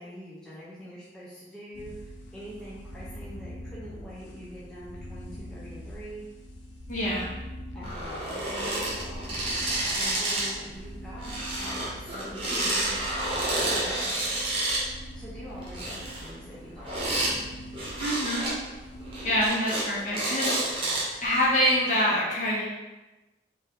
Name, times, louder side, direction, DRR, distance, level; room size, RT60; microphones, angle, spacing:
voice 1, 0.0-6.2 7.7-9.3 9.9-13.0 13.6-14.4 15.1-17.4, equal, 5° left, -9 dB, 0.6 m, -44 dB
sound 1, 1.7-19.5, equal, 85° left, 0.5 m, -43 dB
voice 2, 6.9-7.3 18.0-18.5 19.2-20.9 21.2-22.6, equal, 40° left, -7 dB, 1.2 m, -26 dB
sound 2, 7.8-10.6 10.8-14.8 15.5-17.4 17.7-18.5 19.0-19.9 20.1-21.2 21.8-21.9, right 1 dB, 30° right, 1.0 m, -30 dB
3.7 x 2.7 x 3.6 m, 1.1 s
head